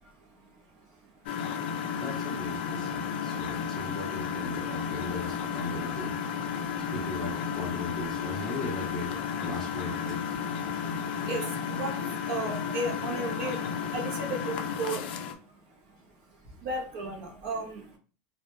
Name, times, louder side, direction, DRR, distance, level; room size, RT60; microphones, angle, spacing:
voice 1, 0.0-1.9 3.0-3.8 5.6-5.8 6.4-6.9 10.6-18.0, right 2 dB, 45° right, 2 dB, 0.5 m, -37 dB
Engine, 1.3-15.3, left 7 dB, 60° left, 0.3 m, -33 dB
voice 2, 1.9-6.1 6.9-10.4, left 2 dB, 10° left, -3 dB, 0.6 m, -38 dB
2.1 x 2.1 x 2.8 m, 0.37 s
supercardioid pair, 175°, 6 cm